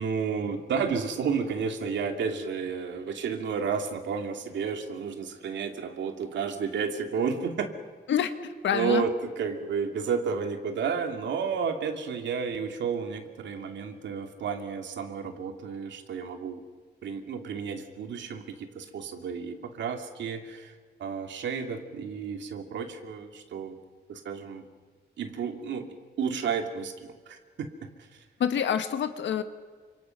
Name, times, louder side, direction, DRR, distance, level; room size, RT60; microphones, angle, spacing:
voice 1, 0.0-7.7 8.7-16.6 17.0-20.7 21.0-23.8 24.1-24.6 25.2-27.7 28.1-28.2, right 6 dB, 85° right, 5 dB, 2.7 m, -31 dB
voice 2, 8.6-9.0 28.4-29.4, left 8 dB, 90° left, 9 dB, 1.8 m, -26 dB
30.0 x 26.5 x 6.0 m, 1.5 s
wide cardioid pair, 170°, 18 cm